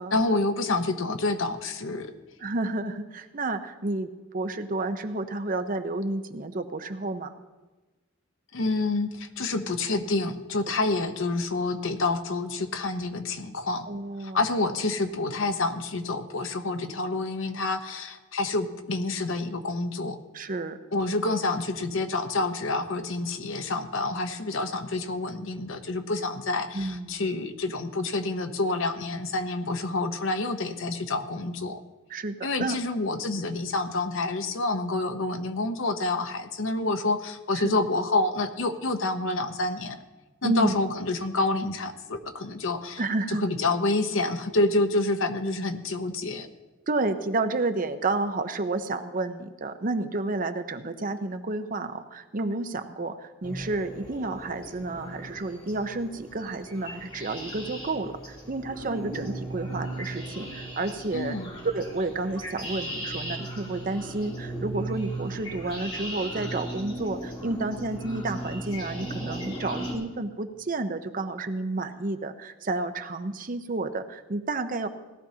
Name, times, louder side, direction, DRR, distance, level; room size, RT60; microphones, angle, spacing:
voice 1, 0.1-2.1 8.5-13.9 14.2-20.2 20.9-31.8 32.4-40.0 40.4-43.0 43.3-46.5 61.1-61.5, left 2 dB, 70° left, 8 dB, 0.9 m, -28 dB
voice 2, 2.4-7.4 13.9-14.4 20.3-20.8 26.7-27.2 32.1-32.8 37.5-37.7 40.4-40.7 43.0-43.4 46.9-61.4 61.7-74.9, right 2 dB, 40° right, 8 dB, 0.7 m, -30 dB
sound 1, 53.4-69.9, right 1 dB, 25° left, 3.0 m, -37 dB
17.5 x 13.0 x 2.8 m, 1.2 s
head